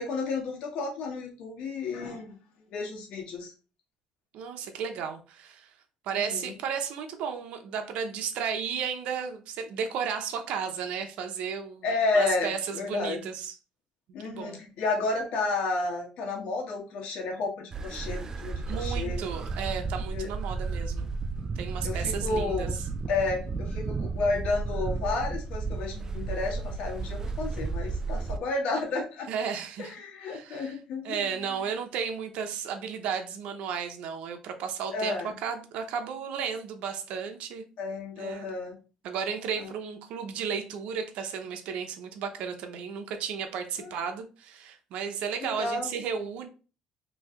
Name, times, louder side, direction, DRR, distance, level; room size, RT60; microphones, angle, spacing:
voice 1, 0.0-2.4 2.7-3.5 6.1-6.5 11.8-13.3 14.1-19.2 20.1-20.3 21.8-22.8 23.1-29.3 29.8-31.7 34.9-35.4 37.8-38.8 39.6-39.7 43.8-44.0 45.4-46.0, left 3 dB, 70° left, 1.2 m, -31 dB
voice 2, 4.3-5.7 6.0-11.9 12.1-13.6 14.2-14.6 18.7-21.1 21.6-22.7 29.3-30.0 30.3-30.8 31.0-37.6 38.2-38.5 39.0-46.5, right 7 dB, 75° right, 0.6 m, -34 dB
sound 1, 17.7-28.4, right 4 dB, 30° right, 0.3 m, -33 dB
3.1 x 2.6 x 3.6 m
cardioid pair, 130°, 2 cm